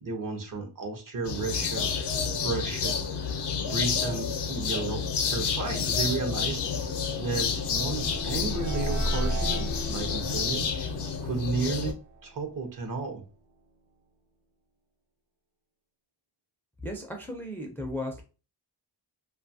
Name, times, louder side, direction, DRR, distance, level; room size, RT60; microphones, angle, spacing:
voice 1, 0.0-1.9 2.4-3.3 3.6-6.6 7.2-10.7 11.2-13.2, right 4 dB, 50° right, 6 dB, 0.7 m, -33 dB
sound 1, 1.2-11.9, left 6 dB, 75° left, 0.6 m, -30 dB
sound 2, 5.8-12.8, right 1 dB, 85° right, 0.8 m, -35 dB
voice 2, 16.8-18.2, left 1 dB, 5° left, 2 dB, 0.4 m, -35 dB
2.6 x 2.3 x 2.6 m, 0.33 s
wide cardioid pair, 135°, 41 cm